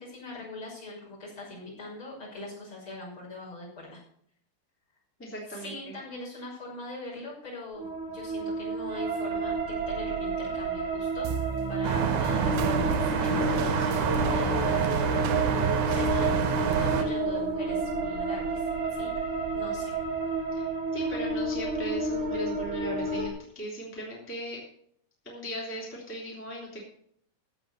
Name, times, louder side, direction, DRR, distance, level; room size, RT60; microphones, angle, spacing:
voice 1, 0.0-4.0 5.5-11.3 11.7-14.8 15.9-19.1 19.5-19.9, left 2 dB, 25° left, -6 dB, 6.7 m, -42 dB
voice 2, 5.2-5.9 11.9-12.2 20.5-20.7 20.9-24.6 25.2-26.8, right 1 dB, 5° left, -4 dB, 1.7 m, -38 dB
sound 1, 7.7-23.3, right 1 dB, 35° right, 1.8 m, -31 dB
sound 2, 11.2-20.0, right 12 dB, 90° right, 3.1 m, -33 dB
sound 3, 11.8-17.0, right 5 dB, 60° right, 2.1 m, -28 dB
15.0 x 6.1 x 6.8 m, 0.64 s
omnidirectional pair, 5.3 m